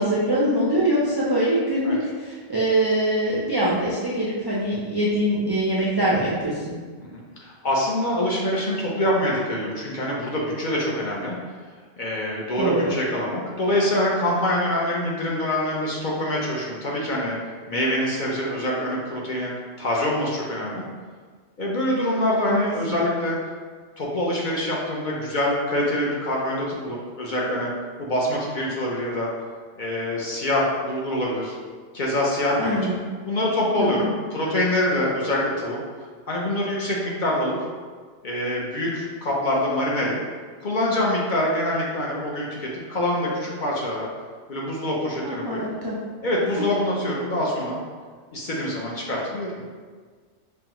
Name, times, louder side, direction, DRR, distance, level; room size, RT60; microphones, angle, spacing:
voice 1, 0.0-6.7 12.6-12.9 22.5-22.6 22.9-23.0 32.6-33.0 33.8-34.1 45.2-46.0 46.6-46.7, right 1 dB, 40° right, -7 dB, 0.3 m, -23 dB
voice 2, 7.0-11.4 12.0-17.4 17.7-20.8 21.6-23.4 24.0-27.7 28.0-29.3 29.8-31.5 31.9-32.8 33.2-35.8 36.3-37.6 38.2-40.2 40.6-44.1 44.5-45.6 46.2-47.8 48.3-49.5, left 1 dB, 50° left, -4 dB, 0.7 m, -25 dB
5.3 x 2.2 x 2.9 m, 1.5 s
omnidirectional pair, 1.2 m